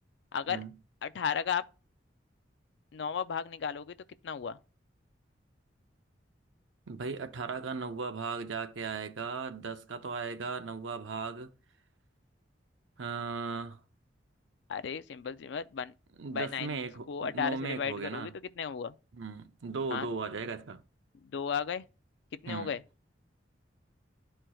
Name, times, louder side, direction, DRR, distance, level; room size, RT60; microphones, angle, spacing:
voice 1, 1.0-1.6 2.9-3.9 4.2-4.6 14.7-15.9 16.3-16.7 17.1-18.3 18.6-18.9 19.9-20.1 21.2-21.8 22.4-22.8, left 7 dB, 70° left, 0.4 m, -34 dB
voice 2, 6.9-11.5 13.0-13.8 16.2-18.3 19.1-20.8 22.5-22.7, right 4 dB, 90° right, 0.6 m, -37 dB
11.5 x 4.4 x 2.3 m
head